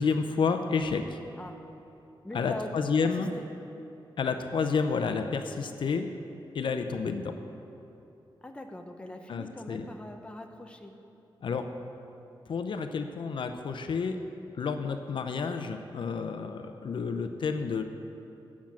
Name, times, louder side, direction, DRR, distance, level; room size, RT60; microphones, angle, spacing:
voice 1, 0.0-1.2 2.3-3.3 4.2-6.1 6.5-7.4 9.3-9.9 11.4-11.7 12.5-14.2 14.6-17.8, left 5 dB, 65° left, 7 dB, 0.6 m, -30 dB
voice 2, 2.2-2.7 3.0-3.1 3.3-3.5 8.4-10.9, left 1 dB, 10° left, 4 dB, 0.7 m, -41 dB
9.5 x 7.2 x 7.5 m, 3.0 s
wide cardioid pair, 145°, 9 cm